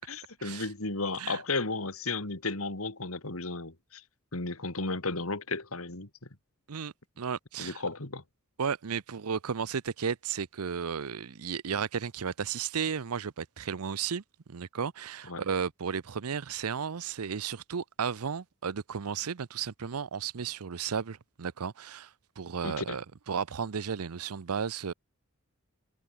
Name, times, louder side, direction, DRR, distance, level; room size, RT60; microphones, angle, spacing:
voice 1, 0.1-4.0 4.3-6.1 7.6-8.2 15.3-15.4 22.6-23.0, left 3 dB, 75° left, 2.6 m, -34 dB
voice 2, 6.7-7.8 8.6-14.2 14.5-22.1 22.4-24.9, right 6 dB, 90° right, 0.6 m, -34 dB
head